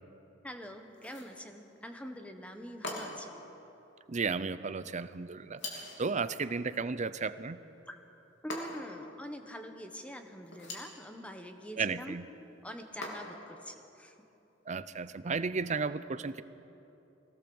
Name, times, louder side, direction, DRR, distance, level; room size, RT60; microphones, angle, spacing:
voice 1, 0.4-3.3 7.9-8.0 8.4-12.2 12.6-14.1, equal, 5° left, 6 dB, 1.2 m, -44 dB
sound 1, 0.9-1.4 2.8-3.4 5.6-6.1 8.5-9.0 10.5-11.0 13.0-13.5, left 2 dB, 70° left, 3.3 m, -41 dB
voice 2, 4.1-7.6 11.8-12.3 14.7-16.4, right 4 dB, 40° right, 14 dB, 0.6 m, -34 dB
22.0 x 17.0 x 7.1 m, 3.0 s
head